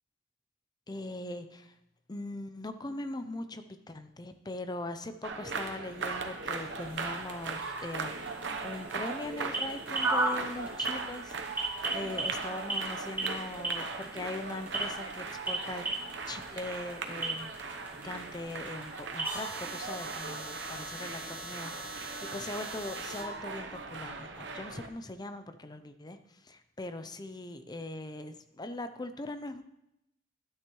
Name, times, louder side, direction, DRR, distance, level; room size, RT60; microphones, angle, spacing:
voice 1, 0.9-1.7 2.1-15.9 16.3-17.7 18.0-29.6, left 2 dB, 20° left, 10 dB, 0.6 m, -41 dB
sound 1, 5.2-24.9, right 4 dB, 65° right, 0.9 m, -39 dB
sound 2, 5.8-23.2, right 2 dB, 10° right, 3.1 m, -38 dB
12.5 x 9.6 x 3.1 m, 0.85 s
head